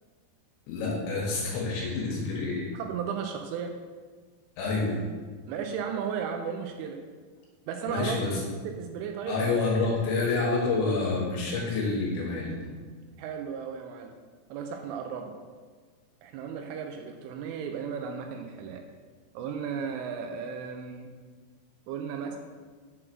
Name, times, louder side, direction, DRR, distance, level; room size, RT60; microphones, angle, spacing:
voice 1, 0.7-2.7 4.6-5.0 7.9-8.4 9.3-12.5, left 3 dB, 70° left, -3 dB, 3.3 m, -28 dB
voice 2, 2.7-3.7 5.5-7.0 7.7-8.4 8.8-9.5 13.2-14.1 14.5-15.3 16.2-18.8 19.3-21.1 21.9-22.4, right 7 dB, 85° right, 4 dB, 2.9 m, -35 dB
7.8 x 3.9 x 6.0 m, 1.5 s
omnidirectional pair, 5.9 m